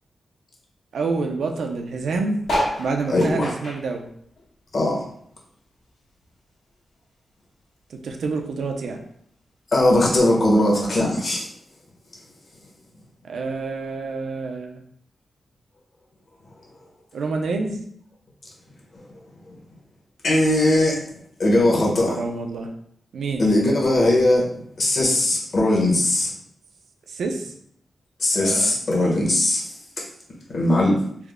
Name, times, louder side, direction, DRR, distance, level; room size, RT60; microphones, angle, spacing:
voice 1, 0.9-2.4 2.8-4.1 7.9-9.0 13.2-14.8 17.1-17.8 22.1-22.7 23.1-23.4 27.1-27.5 28.3-28.8, right 3 dB, 90° right, 3 dB, 0.4 m, -27 dB
sound 1, 2.4-5.2 5.5-7.0 7.5-7.6 7.8-7.9 8.1-8.5 9.3-9.4, equal, 75° left, 1.4 m, -30 dB
voice 2, 3.1-3.5 4.7-5.0 9.7-11.5 20.2-21.0 21.4-22.2 23.4-24.5 24.8-26.3 28.2-29.7 30.5-31.0, left 1 dB, 50° left, -4 dB, 1.1 m, -19 dB
3.4 x 2.1 x 3.5 m, 0.68 s
wide cardioid pair, 120°, 0 cm